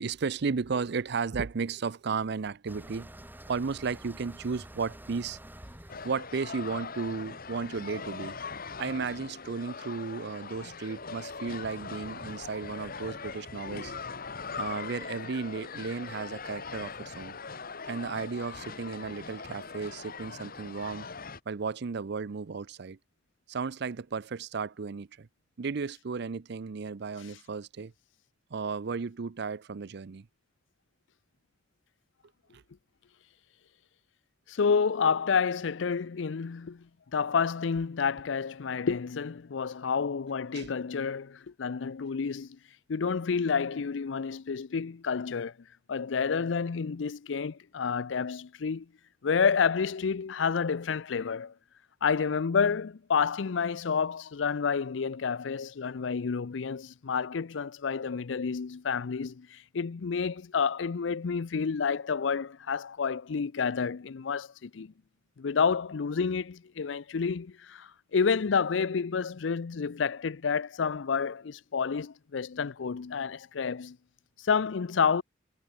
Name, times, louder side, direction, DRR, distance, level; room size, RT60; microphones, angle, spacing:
voice 1, 0.0-3.1 3.5-5.4 6.0-8.4 8.8-13.9 14.6-17.4 17.9-21.1 21.5-23.0 23.5-25.3 25.6-27.9 28.5-30.3 32.5-32.6 40.5-40.7, right 5 dB, 65° right, 0.5 m, -34 dB
sound 1, 2.7-7.6, right 1 dB, 10° right, 2.8 m, -49 dB
sound 2, 5.9-21.4, left 5 dB, 50° left, 2.0 m, -41 dB
voice 2, 34.5-42.6 42.9-45.5 45.9-48.9 49.2-51.5 52.0-64.9 65.4-74.0 74.4-75.2, left 5 dB, 75° left, 0.5 m, -29 dB
head